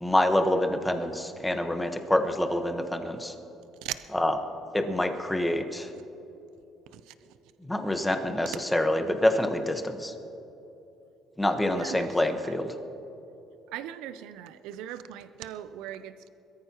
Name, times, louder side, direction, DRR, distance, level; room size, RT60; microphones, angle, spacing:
voice 1, 0.0-3.3 4.1-4.4 4.7-5.9 7.6-10.1 11.4-12.7, left 1 dB, 10° left, 6 dB, 1.2 m, -26 dB
voice 2, 11.8-12.1 13.7-16.3, right 12 dB, 90° right, 12 dB, 0.5 m, -38 dB
22.0 x 14.0 x 3.0 m, 3.0 s
cardioid pair, 115°, 0 cm